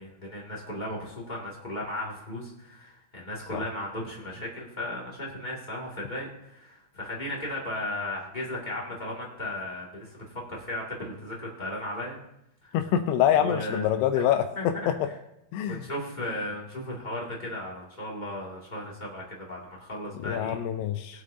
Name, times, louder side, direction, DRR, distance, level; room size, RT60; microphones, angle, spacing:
voice 1, 0.0-12.2 12.6-12.7 13.4-13.8 14.1-14.3 14.5-14.9 15.7-20.6 21.1-21.2, left 1 dB, 35° left, -4 dB, 0.7 m, -36 dB
voice 2, 12.7-15.1 15.5-15.9 20.2-21.2, left 10 dB, 85° left, 6 dB, 2.8 m, -25 dB
20.0 x 8.2 x 2.7 m, 0.83 s
omnidirectional pair, 4.8 m